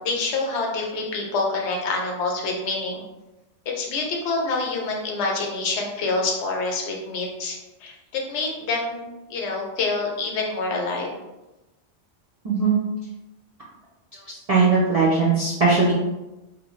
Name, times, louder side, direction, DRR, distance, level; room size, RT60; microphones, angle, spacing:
voice 1, 0.0-3.0 3.7-11.1, left 3 dB, 75° left, 0 dB, 0.9 m, -27 dB
voice 2, 12.4-12.8 14.5-15.9, right 4 dB, 55° right, -7 dB, 0.4 m, -19 dB
2.5 x 2.0 x 3.0 m, 1.0 s
omnidirectional pair, 1.2 m